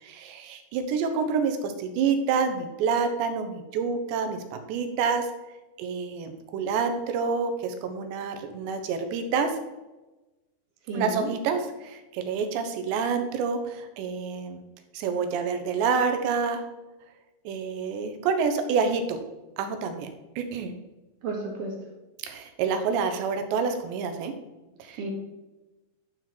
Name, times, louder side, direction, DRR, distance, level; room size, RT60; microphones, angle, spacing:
voice 1, 0.0-5.3 5.8-9.5 10.9-14.6 14.9-16.6 17.5-19.2 19.6-20.7 22.2-24.3 24.8-25.0, right 5 dB, 85° right, 7 dB, 3.2 m, -28 dB
voice 2, 10.9-11.3 21.2-21.7 24.9-25.1, right 3 dB, 55° right, -1 dB, 3.1 m, -32 dB
11.5 x 6.1 x 4.5 m, 1.1 s
omnidirectional pair, 4.9 m